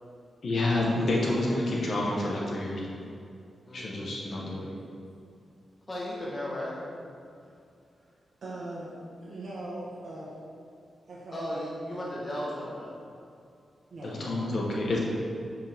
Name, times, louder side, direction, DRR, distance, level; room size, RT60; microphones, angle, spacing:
voice 1, 0.4-3.0 3.7-4.7 14.0-15.0, left 2 dB, 55° left, -3 dB, 1.1 m, -28 dB
voice 2, 3.7-4.1 5.9-6.8 11.3-12.9, left 1 dB, 25° left, -7 dB, 1.2 m, -35 dB
voice 3, 8.4-10.3 11.1-11.7 13.9-14.6, right 1 dB, 55° right, -6 dB, 1.3 m, -40 dB
7.7 x 5.3 x 3.5 m, 2.5 s
wide cardioid pair, 140°, 0 cm